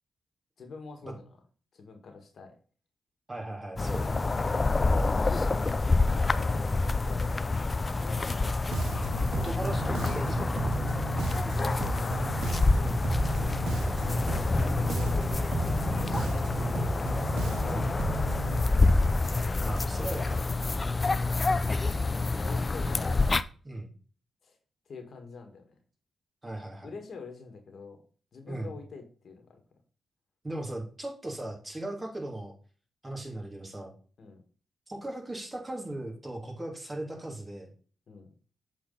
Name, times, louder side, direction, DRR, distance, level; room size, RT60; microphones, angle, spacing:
voice 1, 0.6-1.3 1.7-2.5 4.7-5.2 6.0-7.5 8.0-8.6 11.7-12.6 14.0-15.4 15.9-17.0 17.3-18.1 20.8-21.6 22.0-23.3 24.4-24.6 24.9-25.7 26.8-28.0 28.3-29.6 34.2-34.4 38.1-38.3, left 4 dB, 65° left, 5 dB, 1.7 m, -45 dB
voice 2, 3.3-4.6 9.3-10.6 12.8-13.1 16.1-16.3 17.7-17.8 19.6-20.6 23.6-23.9 26.4-26.9 28.5-28.7 30.4-32.5 33.0-33.9 34.9-37.7, right 1 dB, 25° right, 0 dB, 2.8 m, -38 dB
sound 1, 3.8-23.4, left 3 dB, 35° left, 0.5 m, -27 dB
Bass guitar, 8.7-18.6, right 5 dB, 80° right, 0.7 m, -35 dB
7.5 x 4.2 x 3.9 m, 0.40 s
cardioid pair, 65°, 0 cm